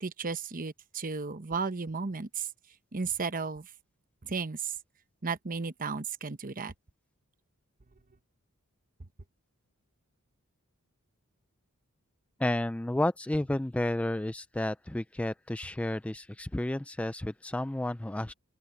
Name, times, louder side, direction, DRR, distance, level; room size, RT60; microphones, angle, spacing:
voice 1, 0.0-2.5 2.9-3.7 4.2-4.7 5.2-6.7, right 5 dB, 40° right, 0.9 m, -34 dB
voice 2, 12.4-18.3, left 1 dB, 5° left, 0.3 m, -31 dB
open air
head